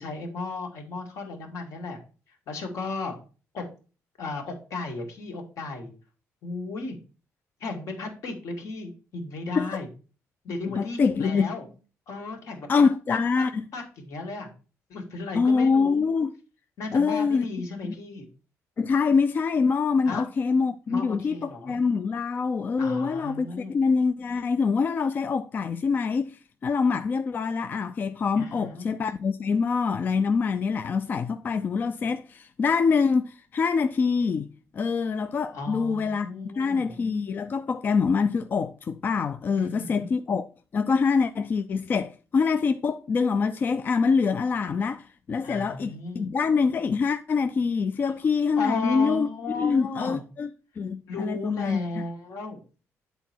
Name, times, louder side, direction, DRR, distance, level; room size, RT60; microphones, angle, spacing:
voice 1, 0.0-2.0 2.5-3.2 3.5-3.6 4.2-5.9 6.4-7.0 7.6-9.9 10.4-11.7 12.1-12.7 13.1-14.5 14.9-16.1 16.8-18.3 20.1-20.3 20.9-21.7 22.8-23.7 28.4-28.9 35.5-37.0 39.5-40.1 45.4-46.3 48.0-48.1 48.6-50.2 51.1-52.6, left 3 dB, 70° left, 2.1 m, -35 dB
voice 2, 10.6-11.5 12.7-13.6 15.3-16.3 16.9-17.5 17.8-17.9 18.8-34.5 34.7-36.3 36.6-40.5 40.7-49.3 49.5-50.5 50.8-52.0, left 5 dB, 35° left, 0.3 m, -25 dB
8.2 x 4.0 x 4.4 m
cardioid pair, 135°, 6 cm